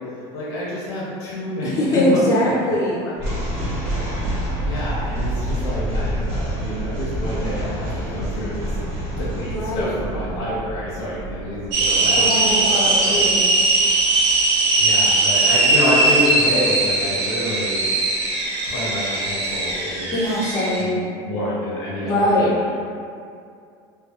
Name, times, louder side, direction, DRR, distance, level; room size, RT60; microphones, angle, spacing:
voice 1, 0.3-2.0 2.4-2.7 3.0-3.3 4.1-8.7 9.2-13.3 14.8-17.8 18.7-20.2 20.8-22.8, left 1 dB, 90° left, -8 dB, 0.8 m, -28 dB
voice 2, 1.6-3.0 9.5-9.9 12.1-13.4 20.1-21.0 22.0-22.5, left 1 dB, 25° left, -6 dB, 0.5 m, -21 dB
sound 1, 3.2-14.5, right 1 dB, 55° right, 0.8 m, -28 dB
sound 2, 11.7-20.8, right 2 dB, 80° right, 0.6 m, -19 dB
2.6 x 2.3 x 2.4 m, 2.3 s
cardioid pair, 150°, 14 cm